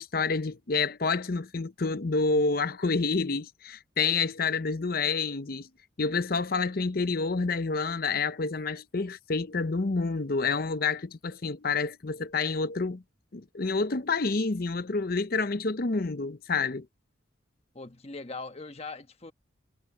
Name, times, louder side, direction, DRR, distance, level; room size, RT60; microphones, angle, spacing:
voice 1, 0.0-5.7 6.0-13.0 13.3-16.9, left 4 dB, 50° left, 0.7 m, -28 dB
voice 2, 17.7-19.3, left 3 dB, 30° left, 1.2 m, -40 dB
head